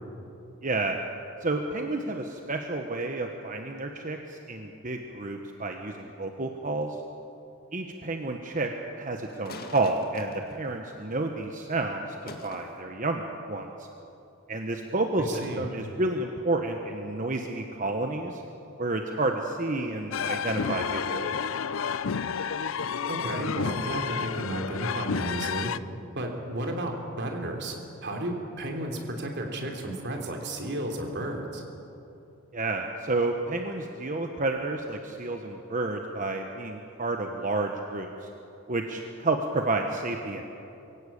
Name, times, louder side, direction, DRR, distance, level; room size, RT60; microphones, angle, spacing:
voice 1, 0.6-1.0 1.4-7.0 7.7-8.7 9.0-13.9 14.5-18.4 18.8-21.4 32.5-38.3 38.7-40.4, right 2 dB, 40° right, 4 dB, 1.1 m, -30 dB
sound 1, 9.3-11.3 12.3-12.7 15.3-15.5, left 2 dB, 45° left, 1.9 m, -44 dB
voice 2, 15.2-15.6 23.1-25.7 26.2-27.8 28.0-31.6, right 1 dB, 55° right, 2 dB, 3.2 m, -33 dB
sound 2, 20.1-25.8, left 6 dB, 70° left, 0.5 m, -30 dB
23.0 x 16.5 x 8.6 m, 2.8 s
head